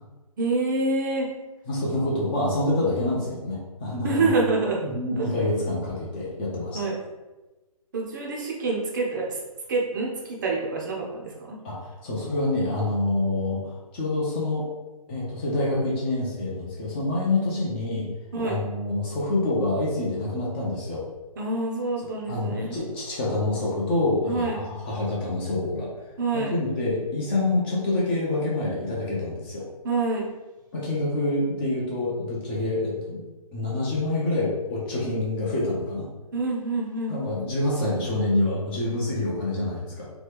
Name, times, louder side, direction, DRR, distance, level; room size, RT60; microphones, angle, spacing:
voice 1, 0.4-1.3 4.0-4.8 5.2-5.3 6.7-7.0 7.9-9.4 9.7-11.6 18.3-18.6 21.4-22.8 24.2-24.6 26.2-26.5 29.8-30.3 36.3-37.2, right 3 dB, 30° right, -1 dB, 0.5 m, -26 dB
voice 2, 1.7-4.3 4.8-6.8 11.6-14.7 15.1-18.1 18.4-21.0 22.3-25.9 26.5-29.6 30.7-33.2 33.5-36.1 37.1-40.0, left 2 dB, 15° left, -5 dB, 0.5 m, -26 dB
2.9 x 2.3 x 3.3 m, 1.1 s
hypercardioid pair, 155°, 19 cm